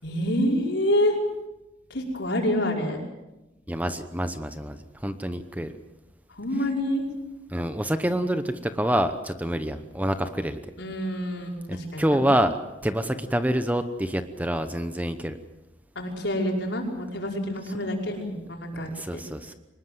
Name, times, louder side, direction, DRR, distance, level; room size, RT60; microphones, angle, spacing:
voice 1, 0.0-1.2 1.9-3.0 6.4-7.0 10.8-12.2 16.0-19.2, equal, 70° left, 0 dB, 5.5 m, -27 dB
voice 2, 3.7-5.7 7.5-10.6 11.7-12.6 12.8-15.4 18.7-19.5, equal, 10° right, 9 dB, 0.9 m, -27 dB
24.0 x 20.0 x 7.8 m, 1.0 s
head